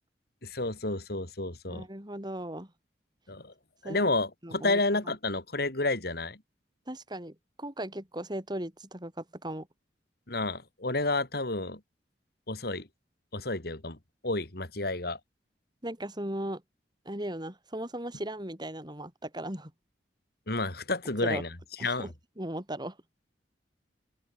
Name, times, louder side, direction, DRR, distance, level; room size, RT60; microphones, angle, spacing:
voice 1, 0.4-1.9 3.3-3.5 3.8-6.4 10.3-11.8 12.5-12.9 13.3-14.0 14.2-15.2 20.5-21.5 21.8-22.1, left 2 dB, 60° left, 3.3 m, -30 dB
voice 2, 1.7-2.7 3.8-4.1 4.4-5.1 6.9-9.7 15.8-16.6 17.1-19.7 21.2-21.4 21.8-23.0, right 1 dB, 25° right, 5.6 m, -37 dB
open air
head